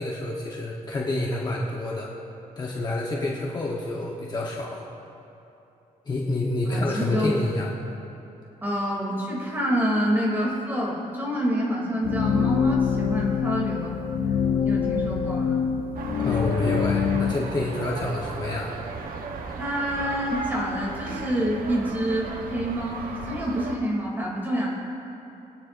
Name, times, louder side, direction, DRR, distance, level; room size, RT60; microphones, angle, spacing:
voice 1, 0.0-2.1 2.6-4.8 6.0-7.7 16.2-18.7, left 2 dB, 30° left, -3 dB, 1.1 m, -28 dB
voice 2, 6.6-7.4 8.6-13.9 14.6-15.6 19.6-24.7, equal, 15° right, -4 dB, 2.8 m, -27 dB
sound 1, 12.0-17.3, left 7 dB, 85° left, 0.6 m, -25 dB
sound 2, 15.9-23.8, right 4 dB, 80° right, 1.0 m, -36 dB
22.0 x 9.8 x 2.6 m, 3.0 s
wide cardioid pair, 150°, 14 cm